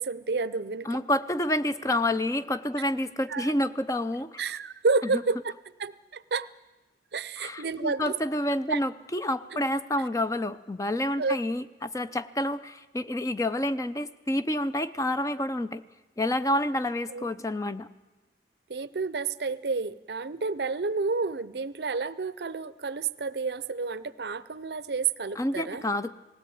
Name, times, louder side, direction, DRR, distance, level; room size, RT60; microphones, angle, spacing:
voice 1, 0.0-1.0 3.3-3.6 4.4-5.5 5.8-6.5 7.1-8.1 8.7-8.8 9.5-9.6 11.2-11.4 17.1-17.3 18.7-25.9, right 4 dB, 65° right, 17 dB, 0.6 m, -30 dB
voice 2, 0.9-4.4 5.1-5.2 7.4-15.8 16.2-17.9 25.4-26.1, left 1 dB, 20° left, 13 dB, 0.6 m, -28 dB
19.0 x 16.5 x 9.3 m, 1.1 s
head